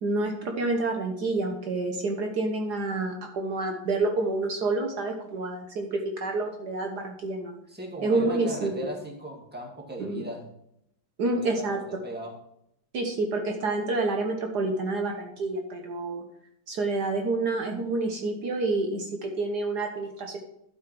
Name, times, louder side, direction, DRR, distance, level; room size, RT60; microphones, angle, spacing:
voice 1, 0.0-7.6 8.0-8.7 10.0-10.2 11.2-11.8 12.9-16.2 16.7-20.4, right 2 dB, 60° right, 3 dB, 1.6 m, -28 dB
voice 2, 7.7-10.4 11.2-12.3, right 1 dB, 5° right, 0 dB, 2.0 m, -38 dB
12.0 x 6.4 x 4.6 m, 0.76 s
omnidirectional pair, 2.0 m